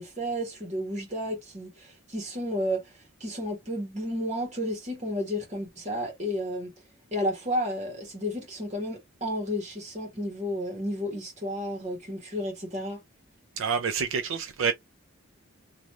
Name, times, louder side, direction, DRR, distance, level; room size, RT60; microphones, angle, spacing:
voice 1, 0.0-2.9 3.2-6.7 7.1-13.0, equal, 35° right, 1.4 m, -32 dB
voice 2, 13.6-14.7, right 6 dB, 70° right, 0.4 m, -27 dB
3.1 x 2.6 x 2.9 m
head